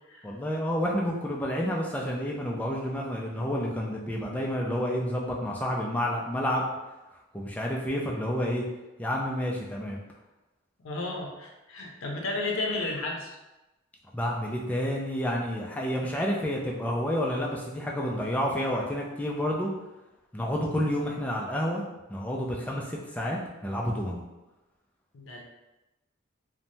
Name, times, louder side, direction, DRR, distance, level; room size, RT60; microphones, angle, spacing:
voice 1, 0.2-6.7 7.3-8.6 9.0-10.0 14.1-19.7 20.3-21.8 22.1-24.2, equal, 5° left, -2 dB, 0.3 m, -29 dB
voice 2, 10.8-13.4 25.1-25.4, left 2 dB, 90° left, 0 dB, 0.5 m, -33 dB
3.1 x 2.1 x 2.6 m, 1.0 s
head